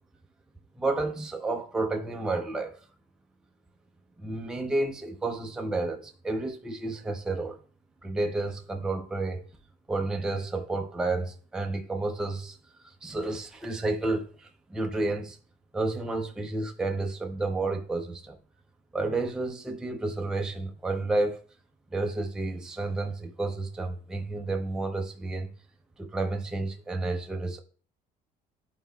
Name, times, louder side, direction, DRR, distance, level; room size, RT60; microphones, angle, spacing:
voice 1, 0.8-2.8 4.2-7.6 8.0-9.4 9.9-12.6 12.8-15.4 15.7-18.4 18.9-21.4 21.9-25.5 26.0-27.6, right 2 dB, 5° right, 0.5 m, -31 dB
11.0 x 4.3 x 2.3 m
cardioid pair, 170°, 16 cm